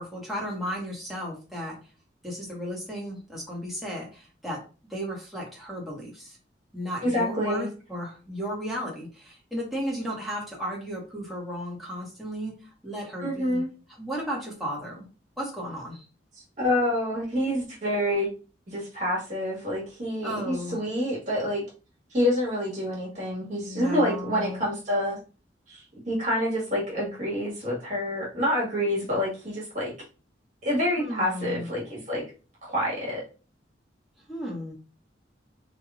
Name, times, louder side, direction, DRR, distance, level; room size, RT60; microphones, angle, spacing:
voice 1, 0.0-1.8 2.2-4.6 4.9-6.4 6.7-13.6 13.9-15.1 15.4-16.0 20.2-20.8 23.6-24.6 31.0-31.7 34.3-34.7, equal, ahead, -5 dB, 1.4 m, -34 dB
voice 2, 7.0-7.7 13.2-13.7 16.6-18.3 18.7-21.6 22.1-25.2 25.7-29.9 30.6-32.2 32.6-33.2, equal, 40° right, -5 dB, 1.7 m, -27 dB
3.3 x 2.8 x 3.6 m, 0.34 s
head